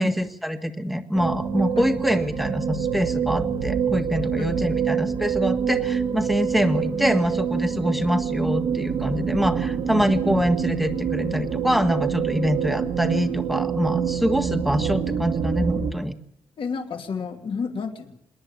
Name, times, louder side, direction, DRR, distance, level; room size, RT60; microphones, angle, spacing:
voice 1, 0.0-16.2, equal, ahead, 7 dB, 1.7 m, -25 dB
sound 1, 1.1-15.9, right 7 dB, 80° right, 2.8 m, -26 dB
voice 2, 4.4-4.8 16.6-18.2, left 5 dB, 60° left, 4 dB, 2.8 m, -31 dB
27.0 x 10.5 x 9.2 m, 0.74 s
cardioid pair, 100°, 10 cm